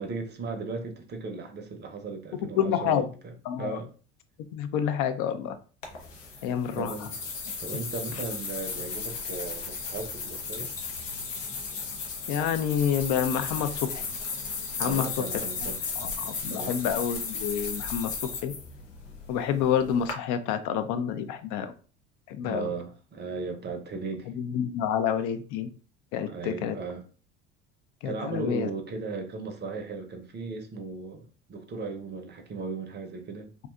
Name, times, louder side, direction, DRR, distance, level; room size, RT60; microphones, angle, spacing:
voice 1, 0.0-3.9 6.8-7.1 7.6-10.7 14.8-15.8 16.2-16.8 22.4-24.3 26.2-27.0 28.0-33.5, right 4 dB, 30° right, 0.6 m, -36 dB
voice 2, 2.6-3.1 3.5-3.8 4.5-5.6 6.4-7.1 12.3-14.0 14.8-15.1 15.6-15.7 16.0-18.1 18.4-18.5 19.3-21.7 22.3-22.7 24.3-25.7 26.1-26.8 28.0-28.7, left 8 dB, 55° left, 0.4 m, -28 dB
sound 1, 5.8-20.1, left 4 dB, 90° left, 0.7 m, -35 dB
2.7 x 2.3 x 2.3 m
hypercardioid pair, 70°, 37 cm